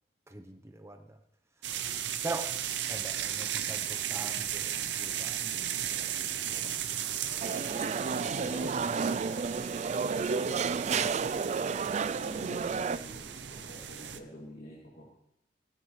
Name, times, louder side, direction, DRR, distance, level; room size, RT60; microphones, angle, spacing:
voice 1, 0.3-1.2 2.2-2.6 2.9-5.3, right 2 dB, 15° right, 5 dB, 0.9 m, -41 dB
sound 1, 1.6-14.2, right 10 dB, 85° right, 0.7 m, -36 dB
voice 2, 5.0-9.2 10.2-11.2 12.3-15.1, equal, 60° left, -6 dB, 2.8 m, -49 dB
sound 2, 7.4-13.0, right 5 dB, 40° right, 0.4 m, -31 dB
18.0 x 13.0 x 3.3 m, 0.83 s
head